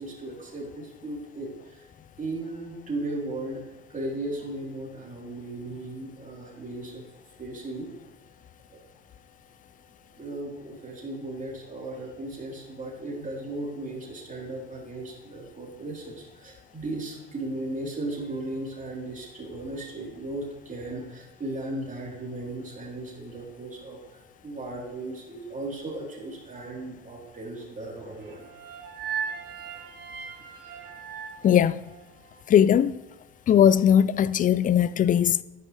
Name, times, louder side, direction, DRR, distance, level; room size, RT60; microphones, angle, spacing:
voice 1, 0.0-1.9 2.2-3.6 3.9-7.0 7.4-7.9 8.7-8.8 10.2-28.5, right 2 dB, 25° right, 3.9 m, -36 dB
sound 1, 28.2-32.4, right 7 dB, 40° right, 3.9 m, -38 dB
voice 2, 31.4-31.8 32.5-33.0 33.5-35.4, left 9 dB, 25° left, 0.4 m, -19 dB
11.0 x 10.5 x 3.4 m
figure-of-eight pair, 55°, 30 cm